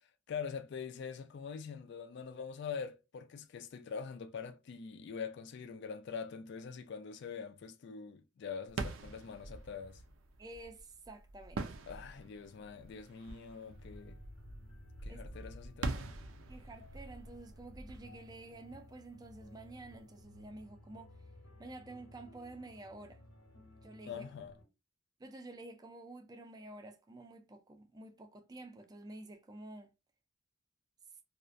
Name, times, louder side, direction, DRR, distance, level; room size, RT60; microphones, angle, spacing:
voice 1, 0.3-10.0 11.9-14.2 15.0-16.2 24.1-24.5, left 6 dB, 55° left, 0.3 m, -44 dB
sound 1, 8.7-19.3, right 3 dB, 80° right, 0.4 m, -45 dB
voice 2, 10.4-11.7 15.1-15.2 16.5-21.1 21.6-23.2 23.8-24.3 25.2-29.9, right 2 dB, 20° right, 0.4 m, -50 dB
sound 2, 13.7-24.6, left 1 dB, 85° left, 0.9 m, -57 dB
2.4 x 2.1 x 2.5 m
head